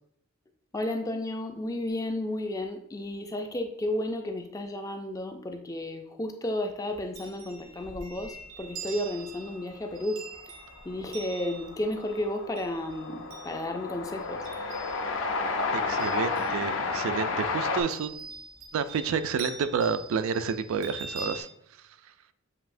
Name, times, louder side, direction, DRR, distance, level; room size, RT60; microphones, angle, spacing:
voice 1, 0.7-10.2 10.8-14.5, left 1 dB, 15° left, 5 dB, 0.3 m, -33 dB
Chime, 6.9-15.4 15.7-17.1 17.9-21.4, right 3 dB, 90° right, 1.1 m, -45 dB
Train, 10.4-10.5 10.7-17.8, left 3 dB, 60° left, 0.5 m, -31 dB
voice 2, 15.7-18.3 18.7-21.5, right 6 dB, 70° right, 11 dB, 0.3 m, -30 dB
7.4 x 2.7 x 2.5 m, 0.76 s
head